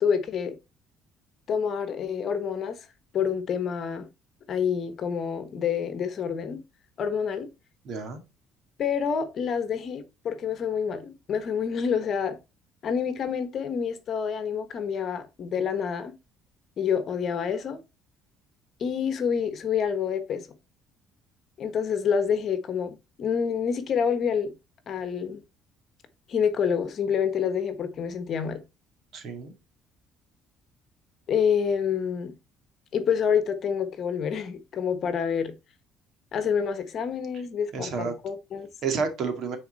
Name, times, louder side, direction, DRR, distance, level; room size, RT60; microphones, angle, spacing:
voice 1, 0.0-0.5 1.5-2.8 3.1-4.1 4.5-6.6 7.0-7.5 8.8-12.4 12.8-16.1 16.8-17.8 18.8-20.4 21.6-24.5 24.9-25.4 26.3-28.6 31.3-32.3 32.9-35.5 36.3-38.7, left 7 dB, 45° left, 1.2 m, -27 dB
voice 2, 7.8-8.2 29.1-29.5 37.7-38.1 38.8-39.6, right 5 dB, 50° right, 2.0 m, -30 dB
9.5 x 4.4 x 4.1 m
cardioid pair, 140°, 0 cm